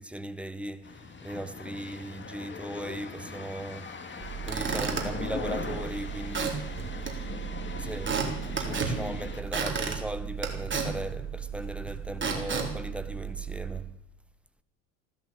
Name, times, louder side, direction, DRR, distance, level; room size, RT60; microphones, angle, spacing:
voice 1, 0.0-6.6 6.9-7.1 7.8-13.9, right 1 dB, 5° right, 1.3 m, -38 dB
sound 1, 0.8-9.4, left 4 dB, 25° left, 2.5 m, -40 dB
Squeak / Wood, 4.2-13.8, right 6 dB, 30° right, 4.2 m, -33 dB
15.5 x 12.5 x 7.3 m
hypercardioid pair, 70°, 41 cm